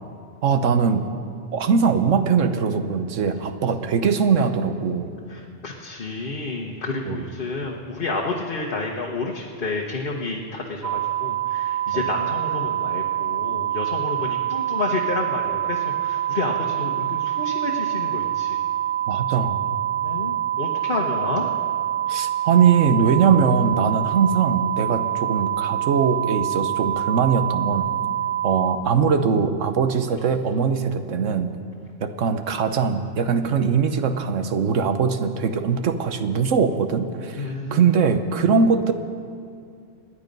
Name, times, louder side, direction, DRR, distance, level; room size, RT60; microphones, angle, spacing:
voice 1, 0.4-1.0 1.5-5.1 7.1-7.3 11.9-12.0 19.1-19.7 22.1-27.9 28.4-31.5 32.0-38.9, right 6 dB, 80° right, 9 dB, 1.3 m, -21 dB
voice 2, 5.3-18.6 20.0-21.5 37.4-37.9, left 3 dB, 45° left, -1 dB, 1.3 m, -30 dB
sound 1, 10.8-28.8, right 11 dB, 55° right, 1.7 m, -25 dB
26.0 x 10.0 x 5.3 m, 2.4 s
omnidirectional pair, 1.3 m